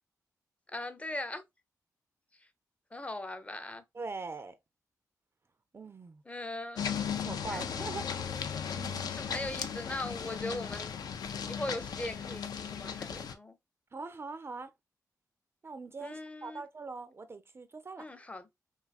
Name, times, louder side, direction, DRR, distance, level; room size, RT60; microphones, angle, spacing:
voice 1, 0.7-1.4 2.9-3.8 6.2-7.0 7.5-7.7 9.1-10.9 11.4-13.6 16.0-16.6 18.0-18.5, left 1 dB, 20° left, 0.5 m, -39 dB
voice 2, 3.9-4.5 5.7-6.2 7.2-8.4 8.7-9.1 13.9-14.7 15.6-18.0, right 4 dB, 35° right, 0.3 m, -42 dB
sound 1, 6.8-13.3, left 7 dB, 75° left, 0.3 m, -36 dB
2.7 x 2.3 x 2.3 m
cardioid pair, 60°, 7 cm